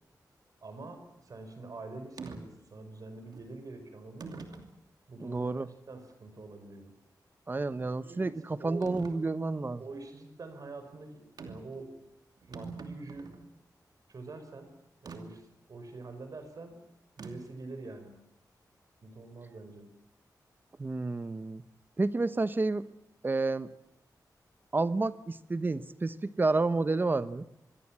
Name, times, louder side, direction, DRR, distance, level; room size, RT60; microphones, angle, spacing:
voice 1, 0.6-4.5 5.1-5.5 5.9-6.9 7.8-8.9 9.8-11.9 12.5-13.3 14.1-14.7 15.0-16.8 17.2-18.2 19.0-19.9, right 3 dB, 55° right, 7 dB, 5.2 m, -45 dB
sound 1, 2.2-2.4 3.3-3.5 4.2-4.7 5.4-5.5 8.8-9.2 11.4-11.7 12.1-12.2 12.4-13.5 15.1-15.2 17.2-17.6, right 4 dB, 75° right, 2.8 m, -43 dB
voice 2, 5.2-5.7 7.5-9.8 20.8-21.6 22.0-22.9 23.2-23.7 24.7-27.4, right 3 dB, 30° right, 14 dB, 0.9 m, -30 dB
25.5 x 22.5 x 7.5 m, 0.82 s
wide cardioid pair, 155°, 7 cm